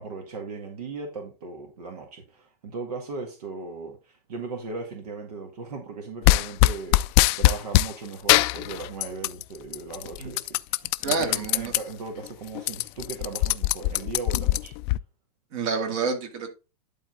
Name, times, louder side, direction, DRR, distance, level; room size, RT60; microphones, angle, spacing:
voice 1, 0.0-14.7, right 4 dB, 75° right, 2.1 m, -37 dB
sound 1, 6.2-7.9 8.3-9.4 9.7-11.8 12.2-12.3 12.6-15.0, left 18 dB, 40° left, 0.4 m, -21 dB
voice 2, 11.0-11.7 15.5-16.5, right 5 dB, 55° right, 2.6 m, -28 dB
11.5 x 4.0 x 3.9 m
hypercardioid pair, 125°, 20 cm